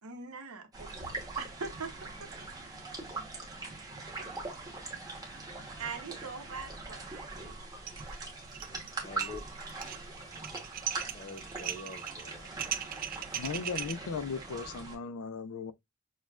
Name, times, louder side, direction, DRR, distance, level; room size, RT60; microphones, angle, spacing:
voice 1, 0.0-1.1 1.4-2.3 5.8-7.6, right 4 dB, 80° right, 0.9 m, -42 dB
sound 1, 0.7-15.0, right 3 dB, 15° right, 1.0 m, -42 dB
sound 2, 7.9-8.1 8.4-8.9 9.2-13.9, right 10 dB, 40° right, 0.3 m, -38 dB
voice 2, 8.9-9.6 11.1-12.5, left 2 dB, 30° left, 0.6 m, -46 dB
voice 3, 13.3-15.7, left 5 dB, 85° left, 0.4 m, -37 dB
6.3 x 2.2 x 2.4 m
head